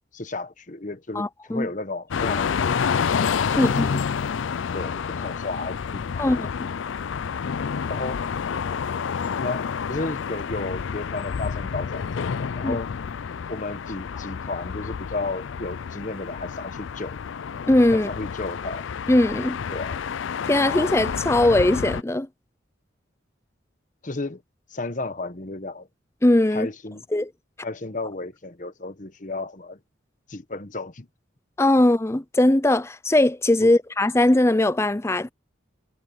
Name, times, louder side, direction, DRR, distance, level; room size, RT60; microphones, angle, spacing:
voice 1, 0.1-4.0 4.7-6.5 7.9-8.3 9.4-12.9 13.5-17.2 17.9-18.8 19.7-20.0 24.0-24.4 24.7-25.9 26.5-27.0 27.6-29.8 30.3-31.1 33.6-33.7, left 2 dB, 40° left, 1.2 m, -33 dB
voice 2, 1.1-1.7 3.6-4.0 6.2-6.5 12.6-12.8 17.7-18.1 19.1-19.6 20.5-22.3 26.2-26.7 27.1-27.3 31.6-35.3, left 1 dB, 15° left, 0.5 m, -20 dB
sound 1, 2.1-22.0, left 6 dB, 80° left, 0.4 m, -29 dB
head